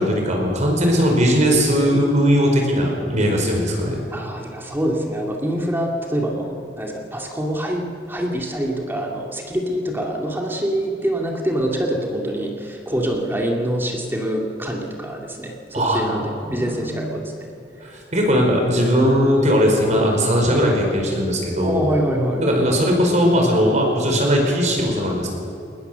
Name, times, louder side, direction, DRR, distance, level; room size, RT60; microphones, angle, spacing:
voice 1, 0.0-4.0 15.7-16.9 17.8-21.9 22.4-25.3, equal, 40° right, 1 dB, 4.9 m, -19 dB
voice 2, 4.1-17.5 20.6-20.8 21.6-22.5, right 1 dB, 15° right, 0 dB, 2.3 m, -25 dB
22.0 x 20.0 x 6.9 m, 2.6 s
head